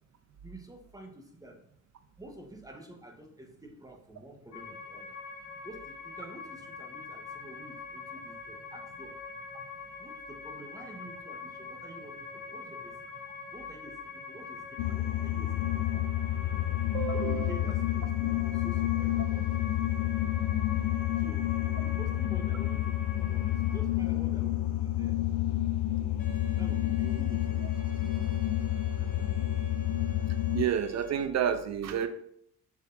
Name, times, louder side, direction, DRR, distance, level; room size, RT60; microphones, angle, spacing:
voice 1, 0.4-1.6 2.2-5.2 5.6-9.2 10.0-12.9 13.5-16.1 17.1-19.7 21.2-21.5 21.8-25.2 26.6-28.2 28.7-29.5, right 1 dB, 10° right, 3 dB, 1.4 m, -49 dB
sound 1, 4.5-23.8, left 5 dB, 65° left, 2.6 m, -44 dB
sound 2, 14.8-30.7, left 13 dB, 85° left, 0.5 m, -29 dB
voice 2, 16.9-17.7 30.5-32.1, right 9 dB, 60° right, 10 dB, 0.8 m, -30 dB
Bowed string instrument, 26.2-31.3, right 3 dB, 30° left, 1.6 m, -48 dB
7.1 x 6.4 x 2.8 m, 0.69 s
cardioid pair, 90°, 30 cm